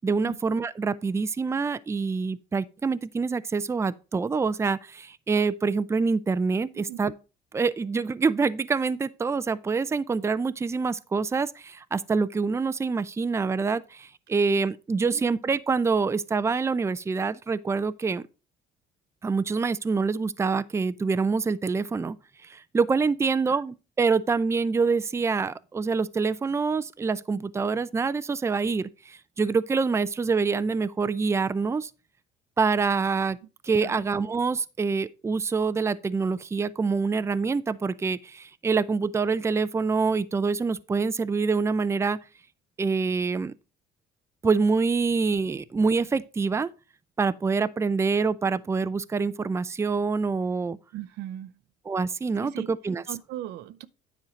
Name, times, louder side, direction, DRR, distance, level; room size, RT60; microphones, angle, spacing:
voice 1, 0.0-7.1 7.5-18.2 19.2-22.2 22.5-31.9 32.6-33.4 33.6-42.2 42.8-43.5 44.4-46.7 47.2-50.8 51.9-53.0, right 4 dB, 15° right, 0.4 m, -26 dB
voice 2, 50.9-51.5 52.4-52.7 53.1-53.9, right 13 dB, 80° right, 0.6 m, -38 dB
9.8 x 4.5 x 5.1 m
cardioid pair, 110°, 17 cm